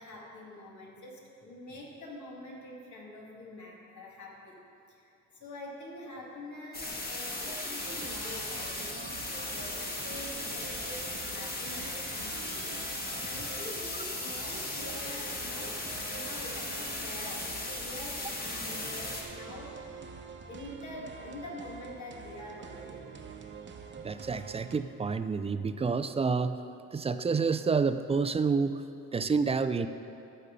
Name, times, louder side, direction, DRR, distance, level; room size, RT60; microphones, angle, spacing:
voice 1, 0.0-4.6 4.9-9.2 9.4-15.8 16.1-19.8 20.5-23.1, left 1 dB, 70° left, -2 dB, 2.3 m, -46 dB
sound 1, 6.7-19.2, left 2 dB, 30° left, 1.7 m, -37 dB
sound 2, 7.8-24.8, right 5 dB, 40° right, 0.8 m, -46 dB
voice 2, 24.0-26.6 26.9-28.8 29.1-29.9, right 5 dB, 20° right, 11 dB, 0.4 m, -29 dB
14.5 x 5.4 x 5.3 m, 2.7 s
cardioid pair, 90°, 30 cm